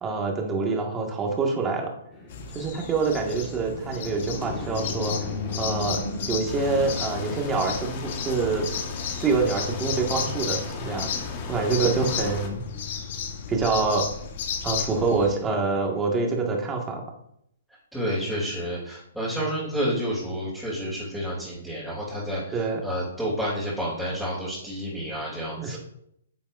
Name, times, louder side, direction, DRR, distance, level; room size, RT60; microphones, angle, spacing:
voice 1, 0.0-1.9 2.5-5.3 5.6-6.0 6.3-8.7 9.2-11.1 11.5-12.6 13.5-14.1 14.6-17.0 22.5-22.8 25.6-25.8, right 4 dB, 15° right, 0 dB, 1.8 m, -26 dB
sound 1, 2.1-16.1, left 4 dB, 20° left, 2.0 m, -39 dB
sound 2, 2.3-15.3, left 6 dB, 55° left, 1.3 m, -34 dB
sound 3, 6.5-12.5, left 4 dB, 35° left, 1.5 m, -37 dB
voice 2, 17.9-25.8, equal, ahead, -9 dB, 3.1 m, -30 dB
10.0 x 7.1 x 2.6 m, 0.73 s
hypercardioid pair, 140°, 0 cm